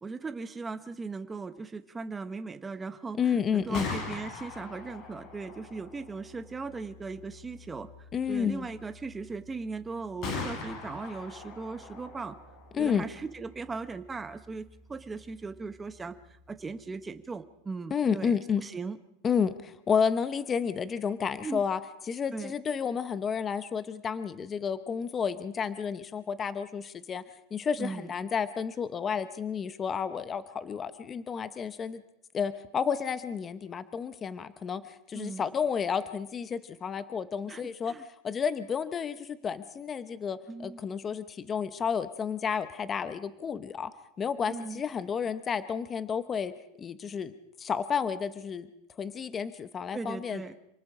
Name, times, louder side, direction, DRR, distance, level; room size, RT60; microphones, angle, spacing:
voice 1, 0.0-7.9 8.3-12.3 12.8-19.0 21.4-21.6 22.3-22.5 27.8-28.1 35.1-35.4 37.5-38.0 40.5-40.8 44.4-44.8 49.9-50.5, right 4 dB, 10° right, 10 dB, 1.1 m, -38 dB
voice 2, 3.2-3.9 8.1-8.7 12.7-13.0 17.9-18.6 19.2-21.8 22.1-27.2 27.5-32.0 32.3-37.9 38.2-43.9 44.2-46.5 46.8-47.3 47.6-48.7 49.0-50.5, left 6 dB, 20° left, 13 dB, 0.9 m, -31 dB
Gunshot gunfire, 3.5-17.3, left 4 dB, 35° left, 6.6 m, -43 dB
28.0 x 19.5 x 4.9 m, 0.82 s
supercardioid pair, 160°, 0 cm